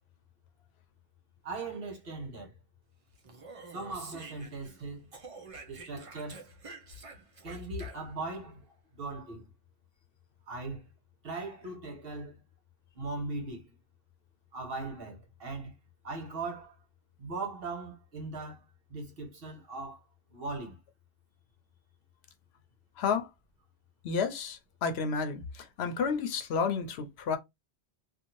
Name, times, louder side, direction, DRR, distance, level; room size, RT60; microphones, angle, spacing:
voice 1, 1.4-2.5 3.7-5.1 5.7-6.5 7.4-9.5 10.5-10.9 11.2-12.4 12.9-13.7 14.5-15.7 16.0-16.8 17.2-20.0 20.3-20.8, right 3 dB, 60° right, 1.1 m, -39 dB
Speech, 3.2-4.8 5.1-8.3, right 4 dB, 40° right, 0.6 m, -48 dB
voice 2, 23.0-23.3 24.0-27.4, left 5 dB, 70° left, 0.8 m, -31 dB
2.6 x 2.4 x 2.9 m
omnidirectional pair, 1.1 m